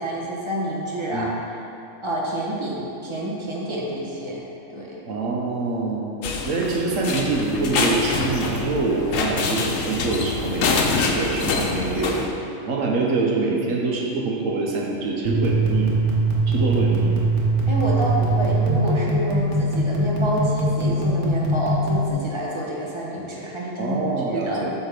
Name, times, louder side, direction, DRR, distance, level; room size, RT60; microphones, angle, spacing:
voice 1, 0.0-1.6 2.0-4.4 4.7-5.0 17.7-24.6, right 1 dB, 25° right, -4 dB, 1.1 m, -28 dB
voice 2, 5.1-6.1 6.4-12.2 12.7-15.9 16.5-17.1 23.8-24.7, right 3 dB, 90° right, -2 dB, 1.4 m, -25 dB
sound 1, 6.2-12.3, left 4 dB, 85° left, 1.1 m, -25 dB
sound 2, 15.2-22.1, right 2 dB, 70° right, 1.3 m, -21 dB
8.0 x 3.6 x 5.9 m, 2.6 s
omnidirectional pair, 1.3 m